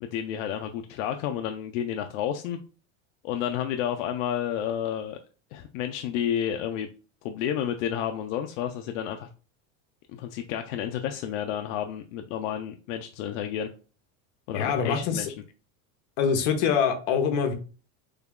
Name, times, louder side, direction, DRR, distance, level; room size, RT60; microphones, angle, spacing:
voice 1, 0.0-2.6 3.2-5.2 5.5-6.9 7.2-9.3 10.1-13.7 14.5-15.3, left 9 dB, 85° left, 6 dB, 0.5 m, -31 dB
voice 2, 14.5-15.3 16.2-17.5, left 7 dB, 65° left, 6 dB, 0.9 m, -24 dB
3.3 x 2.3 x 3.6 m, 0.36 s
supercardioid pair, 145°, 37 cm